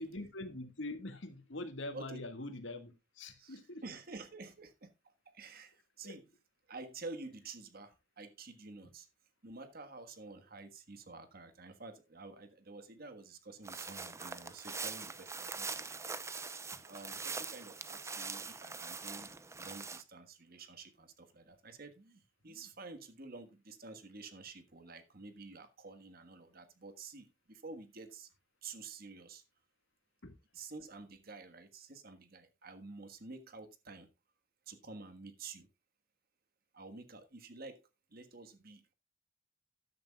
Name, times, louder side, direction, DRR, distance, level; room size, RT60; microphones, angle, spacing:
voice 1, 0.0-3.8 6.0-6.2 30.2-30.3, left 2 dB, 80° left, 1.9 m, -43 dB
voice 2, 1.9-2.3 3.4-6.3 6.7-9.1 9.4-15.7 16.8-19.3 19.6-28.3 28.6-29.4 30.5-34.1 34.7-35.7 36.7-37.8 38.1-38.9, right 3 dB, 55° right, 1.5 m, -50 dB
sound 1, 13.6-20.0, right 4 dB, 15° right, 0.6 m, -43 dB
13.0 x 10.5 x 2.3 m
head